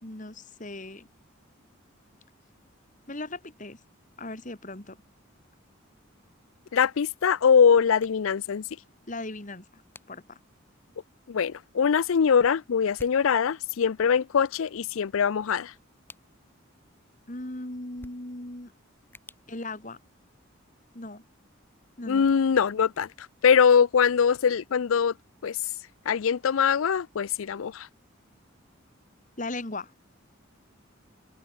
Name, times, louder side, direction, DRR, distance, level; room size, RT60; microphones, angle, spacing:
voice 1, 0.0-1.1 3.1-3.8 4.2-5.0 9.1-9.8 10.1-10.4 17.3-18.7 19.5-20.0 20.9-21.2 22.0-22.3 29.4-29.9, left 2 dB, 40° left, 2.3 m, -38 dB
voice 2, 6.7-8.6 11.3-15.7 22.1-23.1 23.4-25.1 25.4-25.6 26.1-27.9, left 6 dB, 75° left, 0.4 m, -22 dB
sound 1, 6.9-20.6, left 2 dB, 10° left, 2.7 m, -58 dB
head